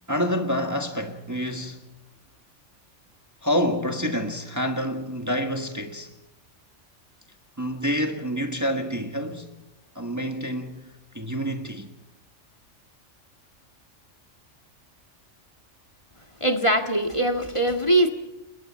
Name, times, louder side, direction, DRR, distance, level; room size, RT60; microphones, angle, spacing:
voice 1, 0.1-1.8 3.4-6.1 7.6-9.6 9.9-11.9, equal, 15° right, 1.5 m, -28 dB
voice 2, 16.4-18.1, right 1 dB, 25° left, 1.9 m, -22 dB
29.5 x 22.5 x 4.3 m
omnidirectional pair, 1.2 m